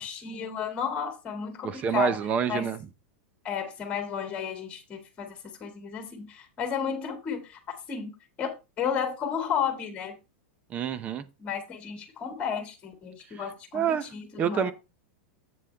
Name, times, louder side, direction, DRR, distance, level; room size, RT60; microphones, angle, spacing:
voice 1, 0.0-2.1 2.5-2.7 3.4-7.6 7.9-8.1 8.4-10.1 11.4-13.8 14.1-14.7, left 7 dB, 15° left, 1.8 m, -33 dB
voice 2, 1.6-2.9 10.7-11.3 13.3-14.7, right 7 dB, 20° right, 0.6 m, -28 dB
7.8 x 7.4 x 3.3 m
supercardioid pair, 160°, 7 cm